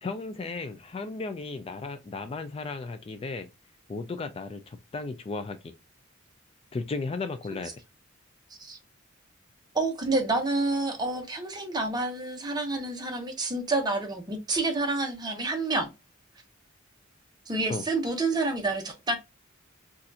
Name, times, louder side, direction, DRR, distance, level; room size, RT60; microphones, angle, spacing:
voice 1, 0.0-3.5 3.9-5.7 6.7-7.8 17.7-17.8, left 3 dB, 30° left, 0.3 m, -35 dB
voice 2, 9.7-15.9 17.5-19.2, right 2 dB, 20° right, 0.8 m, -28 dB
4.1 x 2.4 x 2.7 m
head